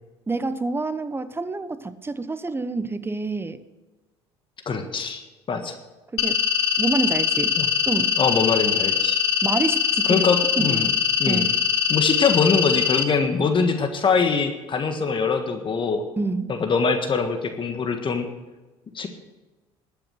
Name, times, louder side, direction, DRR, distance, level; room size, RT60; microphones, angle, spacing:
voice 1, 0.3-3.6 6.1-6.4 6.8-7.6 7.9-8.1 9.4-10.3 10.6-11.0 11.3-11.5 16.2-16.5, right 3 dB, 15° right, 13 dB, 1.0 m, -27 dB
voice 2, 4.6-5.2 5.5-5.8 7.6-7.7 8.2-9.2 10.1-10.9 11.2-11.5 11.9-16.0 16.5-18.3 18.9-19.1, left 5 dB, 40° left, 7 dB, 1.6 m, -23 dB
sound 1, 6.2-13.0, left 8 dB, 85° left, 0.9 m, -22 dB
13.0 x 9.0 x 6.5 m, 1.2 s
hypercardioid pair, 70°, 13 cm